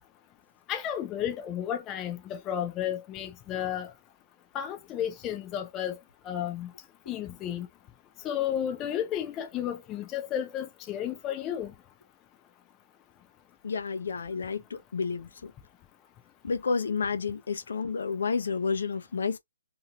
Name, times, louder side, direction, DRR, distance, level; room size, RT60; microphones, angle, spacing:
voice 1, 0.7-3.9 4.5-6.0 6.3-6.7 7.1-7.7 8.2-11.7, left 10 dB, 15° left, 0.3 m, -32 dB
voice 2, 13.6-15.5 16.4-19.4, left 5 dB, 60° left, 0.6 m, -30 dB
2.6 x 2.3 x 2.7 m
hypercardioid pair, 165°, 0 cm